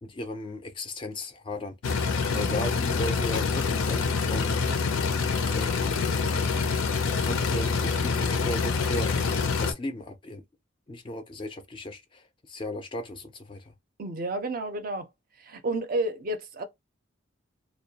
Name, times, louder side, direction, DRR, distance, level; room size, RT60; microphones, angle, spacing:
voice 1, 0.0-1.7 2.3-4.6 5.5-6.1 7.0-9.2 9.6-10.4 10.9-13.7, left 1 dB, 25° left, 0.3 m, -36 dB
sound 1, 1.8-9.7, left 4 dB, 90° left, 0.5 m, -26 dB
voice 2, 2.3-2.7 14.0-15.1 15.4-16.6, right 2 dB, 45° right, 0.4 m, -31 dB
2.2 x 2.1 x 2.7 m
head